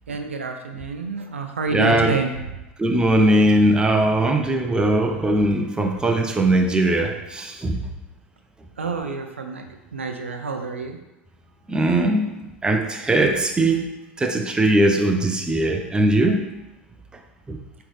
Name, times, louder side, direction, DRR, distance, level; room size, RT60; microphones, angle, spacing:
voice 1, 0.1-2.3 8.8-9.6 9.9-11.0, right 4 dB, 85° right, 5 dB, 0.6 m, -28 dB
voice 2, 1.7-2.2 2.8-7.8 11.7-12.3 12.6-13.9 14.2-16.5 17.5-17.6, right 1 dB, 15° right, 3 dB, 0.8 m, -20 dB
8.7 x 3.5 x 3.3 m, 0.97 s
figure-of-eight pair, 80°, 7 cm